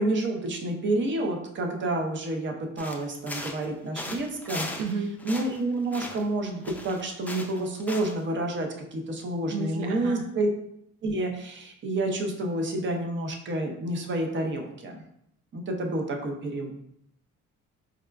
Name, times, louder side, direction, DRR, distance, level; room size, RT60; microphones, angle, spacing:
voice 1, 0.0-4.8 5.2-10.5 11.0-15.0 15.5-16.8, right 1 dB, 40° right, 3 dB, 0.6 m, -29 dB
sound 1, 2.8-3.7 3.9-4.9 5.2-6.4 6.6-8.2, left 1 dB, 5° left, 0.4 m, -38 dB
voice 2, 4.8-5.2 9.5-10.3, right 4 dB, 80° right, 4 dB, 0.5 m, -32 dB
4.8 x 2.2 x 2.3 m, 0.74 s
cardioid pair, 90°, 30 cm